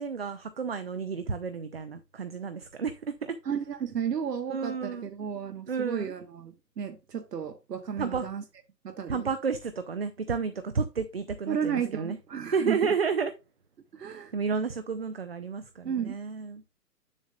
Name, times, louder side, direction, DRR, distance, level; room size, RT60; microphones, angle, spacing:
voice 1, 0.0-3.4 4.5-5.1 5.7-6.1 8.0-8.3 9.1-12.1 12.5-13.3 14.3-16.6, right 5 dB, 40° right, 0.5 m, -31 dB
voice 2, 3.4-8.4 8.8-9.3 11.5-12.9 13.9-14.3 15.8-16.2, right 7 dB, 70° right, 1.1 m, -33 dB
7.3 x 6.3 x 2.4 m
hypercardioid pair, 150°, 49 cm